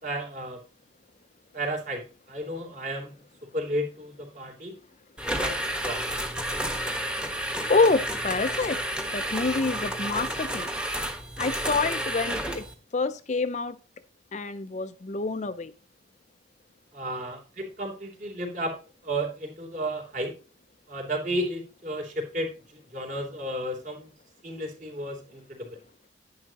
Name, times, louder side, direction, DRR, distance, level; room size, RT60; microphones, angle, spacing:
voice 1, 0.0-0.6 1.5-2.0 2.3-3.1 3.5-4.7 5.4-6.0 16.9-18.7 19.0-20.3 20.9-24.1 24.4-25.7, right 1 dB, 40° right, 2 dB, 3.1 m, -33 dB
sound 1, 5.2-12.7, right 1 dB, 5° right, 1.3 m, -31 dB
voice 2, 7.7-8.8 9.1-10.7 11.4-12.6 12.9-13.7 14.3-15.7, left 3 dB, 35° left, 12 dB, 0.5 m, -27 dB
11.0 x 10.5 x 2.9 m, 0.34 s
head